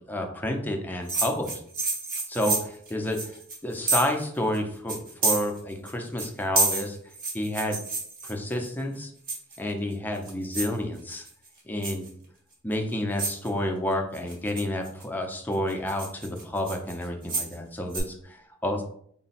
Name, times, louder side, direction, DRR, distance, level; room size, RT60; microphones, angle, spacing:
voice 1, 0.1-1.5 2.3-3.3 3.6-7.0 7.3-7.8 8.2-9.1 9.6-11.2 11.6-12.1 12.6-18.8, left 1 dB, 10° left, 2 dB, 0.6 m, -30 dB
sound 1, 1.1-4.3 4.5-4.6 4.9-5.9 6.2-8.7 9.3-9.7 10.1-10.8 11.1-11.5 11.8-12.1 12.7-12.8 13.2-13.5 14.1-15.0 15.5-17.6 17.9-18.0, right 3 dB, 45° right, 1.2 m, -29 dB
3.8 x 2.2 x 4.2 m, 0.63 s
head